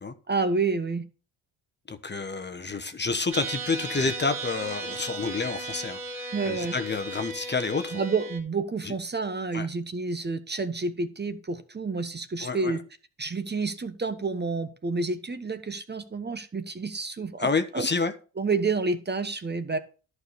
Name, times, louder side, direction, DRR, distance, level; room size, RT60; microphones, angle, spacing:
voice 1, 0.3-1.0 6.3-6.7 7.9-12.8 13.2-17.9 18.4-19.8, right 4 dB, 25° right, 1.1 m, -29 dB
voice 2, 1.9-8.0 8.8-8.9 9.5-9.7 12.4-12.8 17.4-18.1, left 4 dB, 25° left, 1.1 m, -29 dB
sound 1, 3.3-8.4, right 2 dB, 55° right, 3.3 m, -36 dB
11.0 x 4.8 x 6.7 m
supercardioid pair, 65°, 43 cm